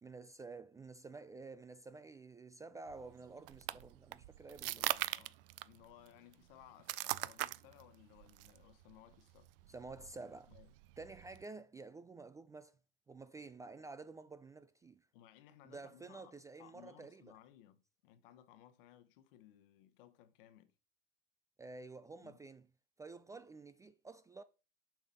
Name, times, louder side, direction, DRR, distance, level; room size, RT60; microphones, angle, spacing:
voice 1, 0.0-4.8 9.7-10.5 11.0-12.8 13.1-15.1 15.6-17.2 21.6-22.7 23.0-24.4, right 3 dB, 10° right, 0.4 m, -51 dB
sound 1, 2.9-11.4, right 17 dB, 65° right, 0.5 m, -43 dB
voice 2, 4.6-9.5 10.5-10.7 15.1-20.7 22.2-22.4, left 12 dB, 65° left, 1.2 m, -61 dB
7.4 x 4.9 x 5.7 m
hypercardioid pair, 95°, 30 cm